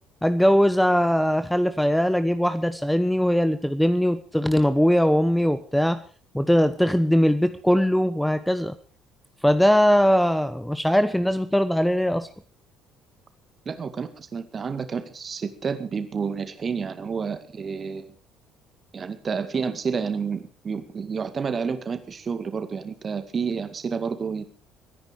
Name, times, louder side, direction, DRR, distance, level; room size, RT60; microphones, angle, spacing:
voice 1, 0.2-6.0 6.3-8.8 9.4-12.3, equal, 5° left, 12 dB, 1.0 m, -21 dB
voice 2, 13.7-18.1 18.9-24.4, right 5 dB, 35° right, 10 dB, 2.1 m, -30 dB
24.0 x 10.5 x 4.8 m, 0.40 s
figure-of-eight pair, 55°, 0 cm